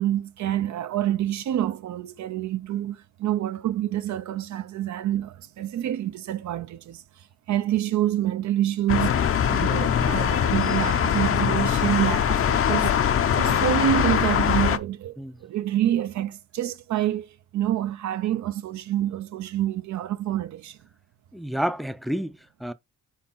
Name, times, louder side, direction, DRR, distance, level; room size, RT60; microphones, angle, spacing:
voice 1, 0.0-7.0 7.5-9.2 9.5-13.0 13.4-20.8, right 12 dB, 70° right, 0.8 m, -27 dB
sound 1, 8.9-14.8, left 8 dB, 45° left, 0.7 m, -22 dB
voice 2, 21.3-22.7, equal, ahead, 0.5 m, -29 dB
4.8 x 4.6 x 5.5 m
cardioid pair, 90°, 30 cm